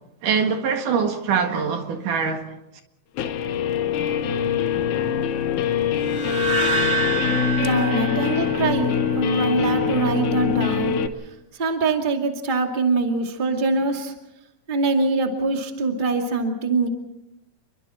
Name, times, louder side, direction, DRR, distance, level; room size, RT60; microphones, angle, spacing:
voice 1, 0.2-2.4, right 6 dB, 70° right, 3.4 m, -23 dB
Guitar, 3.2-11.1, left 7 dB, 70° left, 2.4 m, -23 dB
sound 1, 6.1-9.2, right 4 dB, 25° left, 6.4 m, -27 dB
voice 2, 7.6-11.0 11.6-14.1 14.7-16.9, right 3 dB, 15° right, 2.0 m, -23 dB
29.0 x 23.0 x 4.4 m
omnidirectional pair, 3.8 m